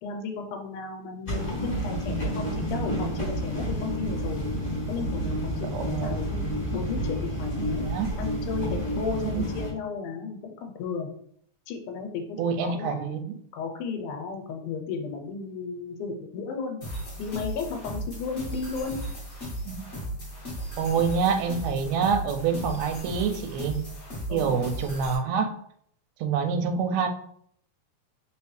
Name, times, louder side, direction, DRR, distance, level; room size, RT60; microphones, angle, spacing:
voice 1, 0.0-4.5 4.9-6.4 6.7-7.9 8.2-11.1 11.7-13.1 13.5-16.8 17.2-19.0 24.3-24.7, left 5 dB, 90° left, 4 dB, 2.2 m, -34 dB
sound 1, 1.3-9.7, equal, 25° left, 1.2 m, -30 dB
voice 2, 5.7-6.4 7.8-8.1 9.2-9.4 12.4-13.3 19.6-19.9 20.8-23.8 24.3-25.5 26.2-27.1, right 6 dB, 80° right, 6 dB, 1.7 m, -27 dB
sound 2, 16.8-25.1, right 1 dB, 45° left, 0.9 m, -36 dB
4.2 x 3.3 x 3.1 m, 0.65 s
omnidirectional pair, 3.5 m